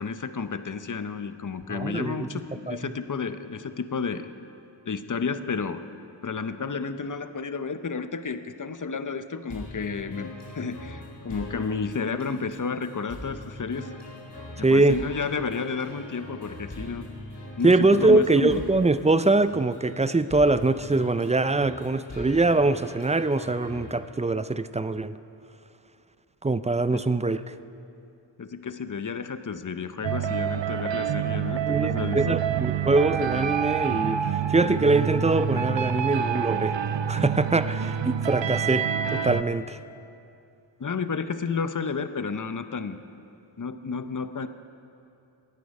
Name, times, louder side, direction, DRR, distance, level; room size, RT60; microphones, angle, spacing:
voice 1, 0.0-4.3 4.9-5.8 6.2-13.9 14.6-17.0 17.6-18.6 26.9-27.0 28.4-32.4 40.8-43.0 43.6-44.5, left 5 dB, 40° left, 11 dB, 0.7 m, -31 dB
voice 2, 1.7-2.3 2.7-2.9 14.6-15.0 17.6-25.2 26.4-27.4 31.7-34.2 34.5-36.8 37.1-39.8, right 3 dB, 15° right, 13 dB, 0.3 m, -23 dB
sound 1, 9.5-23.9, left 1 dB, 60° left, 3.3 m, -42 dB
sound 2, 30.0-39.4, right 8 dB, 70° right, 0.6 m, -27 dB
16.5 x 10.0 x 5.3 m, 2.6 s
wide cardioid pair, 45°, 47 cm